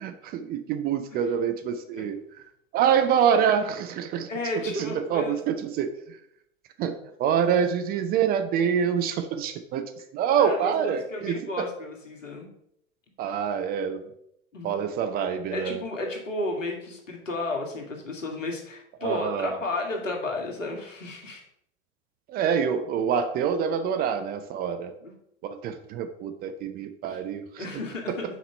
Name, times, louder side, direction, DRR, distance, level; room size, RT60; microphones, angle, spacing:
voice 1, 0.0-2.4 2.7-4.3 4.7-6.2 6.8-11.7 13.2-14.0 14.6-15.8 19.0-19.6 22.3-24.9 25.4-27.7 28.1-28.2, right 7 dB, 25° right, 8 dB, 0.6 m, -26 dB
voice 2, 4.3-5.4 10.4-12.5 14.5-14.7 15.5-21.4 25.0-25.1 27.1-27.2 27.6-28.2, left 2 dB, 75° left, 2 dB, 1.9 m, -33 dB
6.1 x 4.8 x 5.6 m, 0.74 s
figure-of-eight pair, 90°, 39 cm